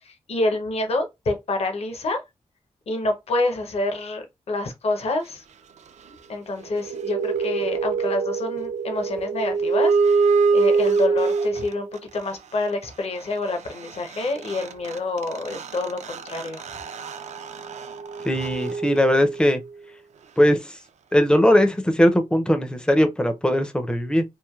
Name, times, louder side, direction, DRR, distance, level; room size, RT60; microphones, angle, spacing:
voice 1, 0.0-2.2 2.9-5.4 6.1-11.9 12.1-16.6, left 2 dB, 55° left, 0.7 m, -27 dB
sound 1, 6.6-12.0 13.9-14.0 14.1-19.6, right 4 dB, 70° right, 0.4 m, -24 dB
voice 2, 18.2-19.6 20.4-20.8 21.1-24.2, equal, 5° left, 0.4 m, -19 dB
3.1 x 2.5 x 2.3 m
wide cardioid pair, 160°, 12 cm